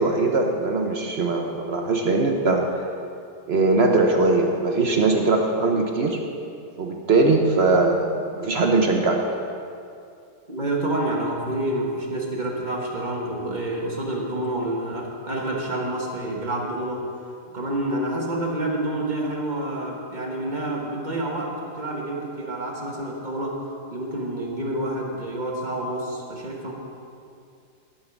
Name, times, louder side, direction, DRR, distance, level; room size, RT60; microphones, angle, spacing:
voice 1, 0.0-2.7 3.5-6.2 6.8-9.2, right 3 dB, 50° right, 2 dB, 0.9 m, -21 dB
voice 2, 10.5-17.0 17.5-23.6 23.9-26.7, right 1 dB, 30° right, -2 dB, 1.3 m, -28 dB
13.0 x 5.6 x 7.0 m, 2.4 s
omnidirectional pair, 1.9 m